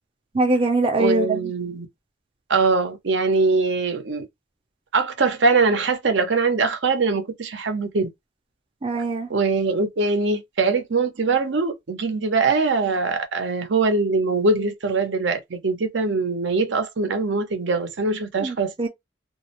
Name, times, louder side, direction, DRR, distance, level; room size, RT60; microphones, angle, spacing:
voice 1, 0.3-1.5 8.8-9.3 18.4-18.9, right 2 dB, 30° right, 0.5 m, -22 dB
voice 2, 1.0-1.9 2.5-4.3 4.9-8.1 9.3-18.9, right 4 dB, 75° right, 0.7 m, -22 dB
2.4 x 2.0 x 2.8 m
head